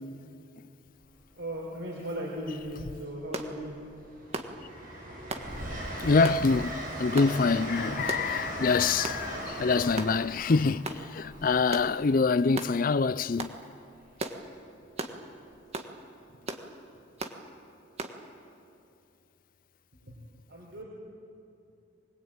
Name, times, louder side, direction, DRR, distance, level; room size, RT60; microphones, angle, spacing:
Train, 0.9-1.2 2.5-3.2 3.6-12.4 14.0-14.2, right 1 dB, 50° right, 7.5 m, -39 dB
voice 1, 1.4-3.7 16.3-16.4 20.1-20.2 20.5-20.8, right 1 dB, 90° right, 4.3 m, -37 dB
sound 1, 3.3-3.5 4.3-4.5 5.3-5.5 6.2-6.4 7.2-7.3 8.1-8.3 9.0-9.2 10.0-10.2 10.8-11.0 11.7-11.9 12.5-12.7 13.4-13.6 14.2-14.4 15.0-15.2 15.7-15.9 16.5-16.7 17.2-17.4 18.0-18.2, right 2 dB, 35° right, 1.6 m, -36 dB
voice 2, 6.0-13.6, left 4 dB, 50° left, 0.5 m, -25 dB
23.0 x 21.5 x 8.9 m
head